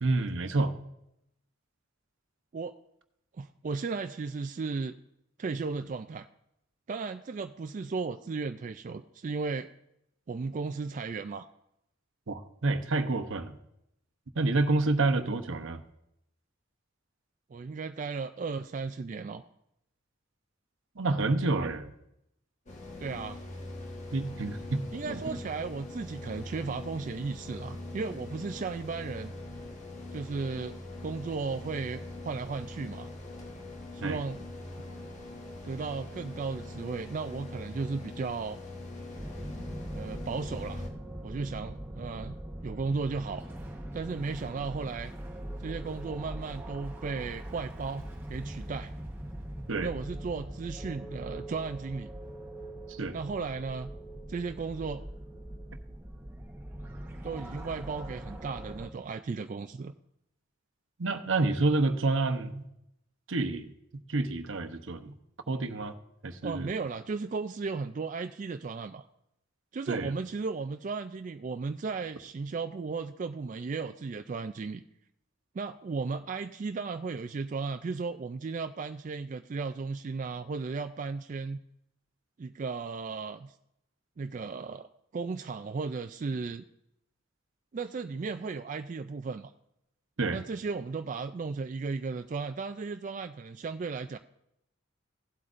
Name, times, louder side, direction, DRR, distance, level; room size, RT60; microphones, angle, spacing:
voice 1, 0.0-0.7 12.3-13.6 14.3-15.8 21.0-21.9 24.1-24.8 25.1-25.4 34.0-34.2 49.7-49.9 52.9-53.2 61.0-62.6 63.3-63.7 64.1-65.1 65.5-65.9 66.2-66.7 69.9-70.1 90.2-90.4, right 2 dB, 75° right, 8 dB, 0.8 m, -28 dB
voice 2, 3.4-4.9 5.4-6.3 6.9-9.7 10.3-11.5 17.5-19.4 23.0-23.4 24.9-29.3 30.1-30.8 31.0-33.1 33.9-34.4 35.6-38.6 39.9-40.8 41.2-42.4 42.6-43.5 43.9-45.1 45.6-48.9 49.8-52.1 53.1-53.9 54.3-55.0 57.2-59.9 66.4-69.1 69.7-74.8 75.5-81.6 82.4-83.5 84.2-84.9 85.1-86.6 87.7-89.5 90.3-94.2, right 4 dB, 40° right, 7 dB, 0.3 m, -35 dB
sound 1, 22.7-40.9, left 2 dB, 35° left, 1.4 m, -42 dB
sound 2, 39.1-58.9, right 1 dB, 10° right, 1.1 m, -42 dB
16.5 x 8.0 x 2.5 m, 0.80 s
head